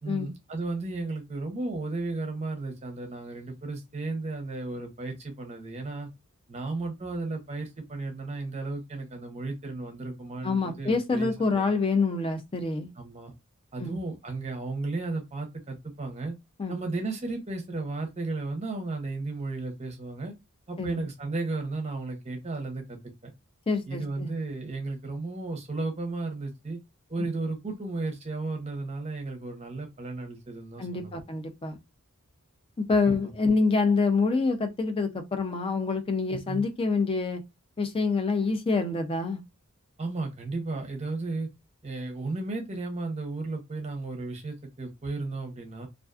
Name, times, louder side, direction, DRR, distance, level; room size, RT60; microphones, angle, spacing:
voice 1, 0.0-6.1 6.5-11.7 13.0-13.3 13.7-16.4 16.7-20.3 20.7-23.3 23.9-26.8 27.1-31.2 33.0-33.3 36.3-36.6 40.0-41.5 41.8-45.9, right 3 dB, 30° right, 0.7 m, -34 dB
voice 2, 10.4-12.9 13.8-14.0 16.6-16.8 20.8-21.0 23.7-24.3 30.8-31.8 32.8-37.4 37.8-39.4, left 4 dB, 25° left, 0.4 m, -26 dB
2.4 x 2.3 x 2.3 m
head